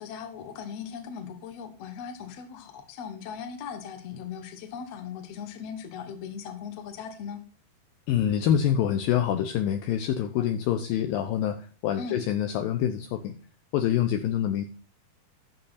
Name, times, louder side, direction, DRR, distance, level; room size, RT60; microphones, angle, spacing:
voice 1, 0.0-7.4 12.0-12.2, left 7 dB, 60° left, 8 dB, 1.8 m, -39 dB
voice 2, 8.1-11.6 11.8-13.3 13.7-14.7, left 10 dB, 75° left, 8 dB, 2.2 m, -26 dB
12.0 x 6.6 x 4.1 m, 0.39 s
omnidirectional pair, 4.6 m